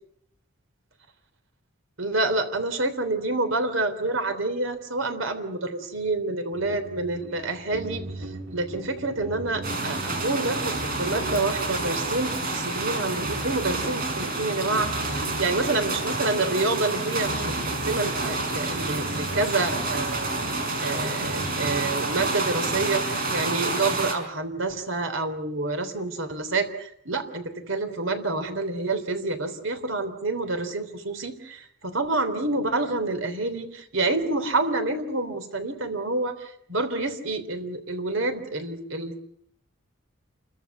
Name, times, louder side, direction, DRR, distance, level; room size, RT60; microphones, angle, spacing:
voice 1, 2.0-17.5 17.9-39.2, right 2 dB, 75° right, 8 dB, 3.4 m, -28 dB
sound 1, 6.5-22.8, right 1 dB, 90° right, 3.0 m, -40 dB
sound 2, 9.6-24.1, right 2 dB, 45° right, 5.4 m, -29 dB
29.0 x 14.5 x 9.6 m, 0.72 s
head